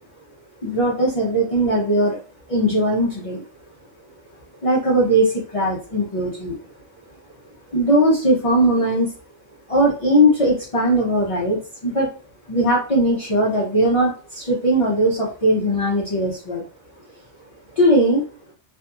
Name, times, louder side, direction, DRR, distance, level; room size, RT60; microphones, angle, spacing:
voice 1, 0.6-2.2 2.5-3.4 4.6-6.6 7.7-9.1 9.7-12.1 12.5-16.6 17.8-18.2, right 1 dB, 50° left, -6 dB, 0.4 m, -19 dB
2.7 x 2.6 x 2.3 m, 0.38 s
omnidirectional pair, 1.4 m